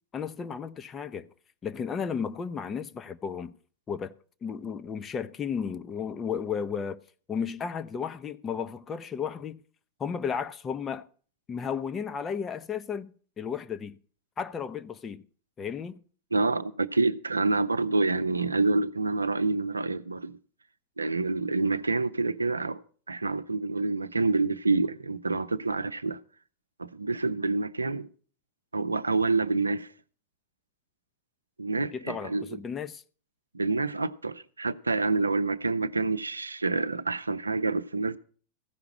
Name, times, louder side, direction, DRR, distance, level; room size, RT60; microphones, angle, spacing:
voice 1, 0.1-1.3 1.6-3.5 3.9-4.1 4.4-7.0 7.3-9.6 10.0-11.1 11.5-14.0 14.4-15.2 15.6-16.0 31.9-33.0, left 7 dB, 20° left, 0.7 m, -34 dB
voice 2, 16.3-20.4 21.0-22.8 23.1-26.2 26.8-28.1 28.7-29.9 31.6-32.4 33.5-38.2, right 3 dB, 80° right, 0.6 m, -27 dB
15.0 x 5.9 x 8.5 m
figure-of-eight pair, 90°, 0 cm